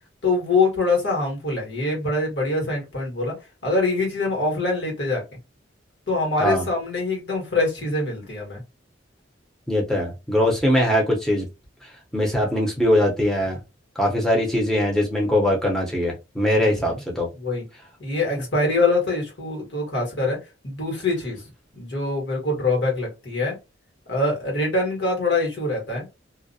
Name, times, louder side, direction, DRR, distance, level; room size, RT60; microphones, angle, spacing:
voice 1, 0.2-3.3 3.6-5.2 6.1-8.6 16.6-17.0 17.4-17.6 18.0-20.4 20.6-21.4 21.8-23.6 24.1-26.1, left 3 dB, 60° left, 0 dB, 1.2 m, -24 dB
voice 2, 9.7-11.5 12.1-13.6 14.0-17.3, left 1 dB, ahead, -2 dB, 0.7 m, -21 dB
2.4 x 2.1 x 2.6 m, 0.25 s
head